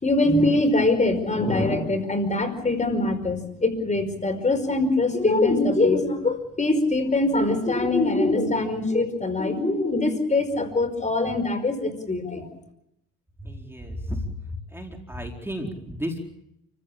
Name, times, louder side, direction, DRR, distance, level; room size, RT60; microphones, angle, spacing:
voice 1, 0.0-12.4, left 2 dB, 25° left, 8 dB, 5.2 m, -23 dB
voice 2, 13.4-14.2 14.7-16.2, equal, 10° right, 2 dB, 4.5 m, -33 dB
29.5 x 15.5 x 8.7 m, 0.80 s
cardioid pair, 90°, 30 cm